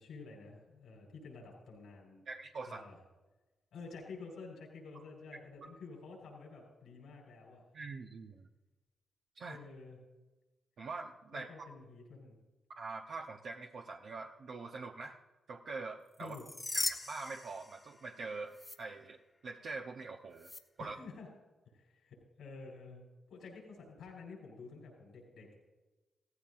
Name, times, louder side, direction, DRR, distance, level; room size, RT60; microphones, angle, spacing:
voice 1, 0.0-2.2 2.7-3.0 3.7-7.6 9.4-10.0 11.3-12.4 16.2-16.4 20.8-21.3 21.7-23.0 23.3-25.6, left 4 dB, 85° left, -1 dB, 4.3 m, -50 dB
voice 2, 2.3-2.8 7.7-8.5 9.4-9.6 10.8-11.5 12.7-15.2 15.5-16.3 16.7-19.2 19.4-20.5 20.8-21.0, right 4 dB, 70° right, 1 dB, 0.9 m, -44 dB
sound 1, 16.2-18.2 18.5-18.8 20.4-20.6, left 2 dB, 25° left, 1.4 m, -39 dB
16.0 x 14.5 x 2.6 m, 1.2 s
cardioid pair, 55°, 0 cm